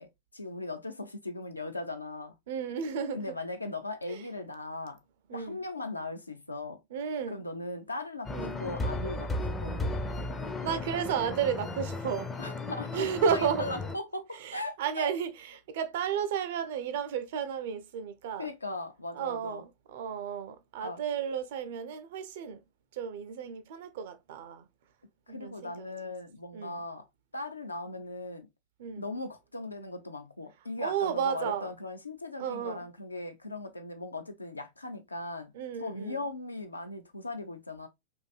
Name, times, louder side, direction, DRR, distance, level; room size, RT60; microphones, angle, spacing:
voice 1, 0.0-2.3 3.1-5.0 5.3-6.8 7.3-9.7 12.4-15.1 18.4-19.6 20.8-21.0 25.3-27.1 27.3-28.5 29.0-35.5 35.8-37.9, left 2 dB, 80° left, 0.4 m, -38 dB
voice 2, 2.5-3.3 4.1-4.2 5.3-5.6 6.9-7.4 8.3-8.6 10.6-12.3 12.9-13.7 14.3-18.5 19.1-22.6 22.9-24.7 25.3-25.9 26.5-26.8 28.8-29.1 30.8-31.7 32.4-32.9 35.5-36.2, right 8 dB, 55° right, 0.4 m, -33 dB
sound 1, 8.3-14.0, left 2 dB, 15° left, 0.4 m, -35 dB
2.6 x 2.3 x 2.2 m
figure-of-eight pair, 90°, 0 cm